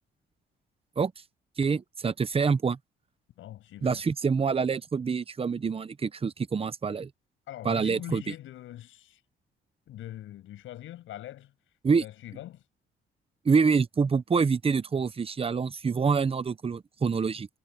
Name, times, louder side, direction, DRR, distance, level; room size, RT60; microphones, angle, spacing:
voice 1, 1.6-2.8 3.8-7.1 7.6-8.2 11.8-12.0 13.4-17.5, right 5 dB, 30° right, 0.9 m, -26 dB
voice 2, 3.4-4.1 7.5-9.2 9.9-12.6, left 13 dB, 85° left, 7.3 m, -43 dB
cardioid pair, 90°, 20 cm